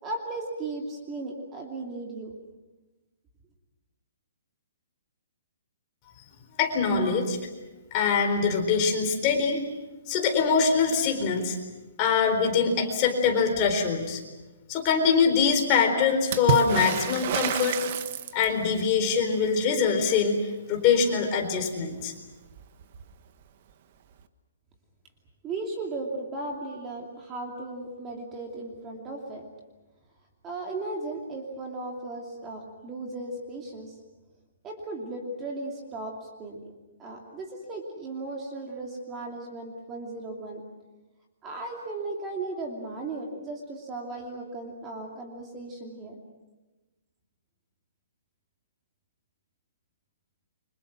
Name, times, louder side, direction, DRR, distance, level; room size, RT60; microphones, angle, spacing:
voice 1, 0.0-2.4 25.4-29.4 30.4-33.9 34.6-36.6 37.0-40.6 41.4-46.2, right 2 dB, 15° right, 0 dB, 2.7 m, -36 dB
voice 2, 6.6-7.4 7.9-9.6 10.1-11.6 12.0-14.2 14.7-17.8 18.3-20.4 20.7-22.1, left 5 dB, 25° left, 3 dB, 4.2 m, -23 dB
Water / Splash splatter, 16.3-18.7 22.0-22.1 22.3-23.1 24.2-24.3, right 9 dB, 40° right, 1.4 m, -29 dB
30.0 x 25.5 x 6.2 m, 1.1 s
hypercardioid pair, 170°, 0 cm